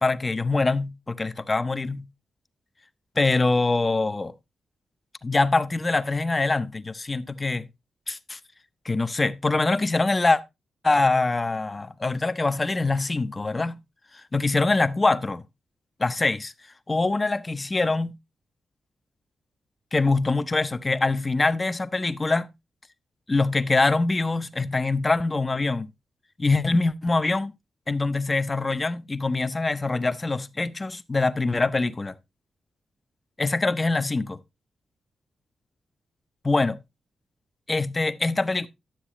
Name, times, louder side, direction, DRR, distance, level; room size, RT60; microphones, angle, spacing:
voice 1, 0.0-2.0 3.2-4.3 5.2-7.7 8.1-8.4 8.8-10.4 10.8-13.7 14.3-15.4 16.0-16.5 16.9-18.1 19.9-22.5 23.3-25.9 26.4-27.5 27.9-32.1 33.4-34.4 36.4-36.8 37.7-38.7, left 3 dB, 25° left, 0.6 m, -24 dB
11.5 x 7.7 x 3.0 m
wide cardioid pair, 115°, 0 cm